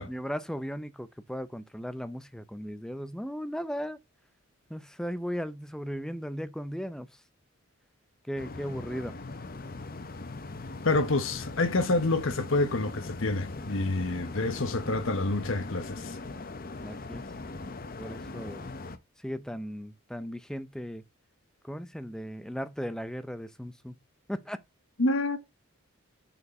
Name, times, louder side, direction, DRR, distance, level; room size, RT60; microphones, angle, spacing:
voice 1, 0.0-4.0 4.7-7.1 8.3-9.1 16.8-17.2 18.0-18.7 19.2-21.0 21.6-24.0 24.3-24.6, equal, 5° left, 0.5 m, -36 dB
sound 1, 8.4-19.0, left 3 dB, 45° left, 0.8 m, -40 dB
voice 2, 10.8-16.2 25.0-25.4, left 2 dB, 65° left, 1.0 m, -27 dB
6.9 x 4.4 x 5.4 m
head